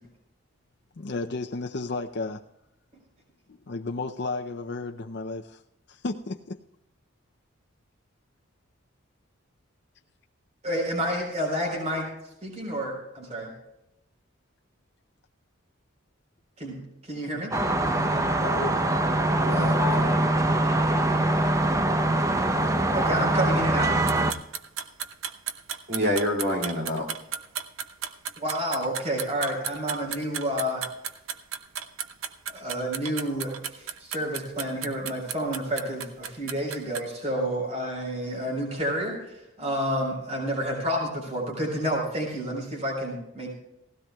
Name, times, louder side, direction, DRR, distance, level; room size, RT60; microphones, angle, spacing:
voice 1, 1.0-2.4 3.5-5.6 5.9-6.6 18.2-19.1 19.9-20.0 20.4-21.2 26.9-27.0, left 3 dB, 55° left, 3 dB, 0.5 m, -34 dB
voice 2, 10.6-12.1 12.4-13.5 16.6-17.5 22.9-24.0 28.4-30.8 32.5-39.2 39.6-43.5, equal, 30° right, -1 dB, 4.1 m, -29 dB
sound 1, 17.5-24.3, right 1 dB, 15° right, 0.6 m, -23 dB
voice 3, 19.4-20.5 25.9-27.1, left 1 dB, 55° right, 0 dB, 2.5 m, -28 dB
sound 2, 24.1-37.0, right 8 dB, 80° right, 0.8 m, -34 dB
18.0 x 16.0 x 2.3 m, 0.86 s
head